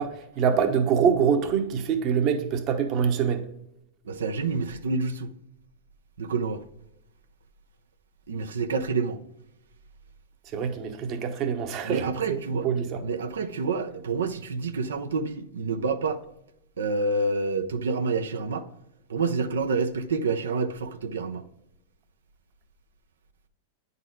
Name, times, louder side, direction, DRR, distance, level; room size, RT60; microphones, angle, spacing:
voice 1, 0.0-3.4 10.5-12.4 12.6-13.0, right 7 dB, 45° right, 1.0 m, -25 dB
voice 2, 4.0-5.3 6.2-6.6 8.3-9.2 11.8-12.7 13.0-16.2 16.8-18.7 19.1-21.4, right 4 dB, 85° right, 0.6 m, -28 dB
9.1 x 4.1 x 3.8 m
hypercardioid pair, 115°, 0 cm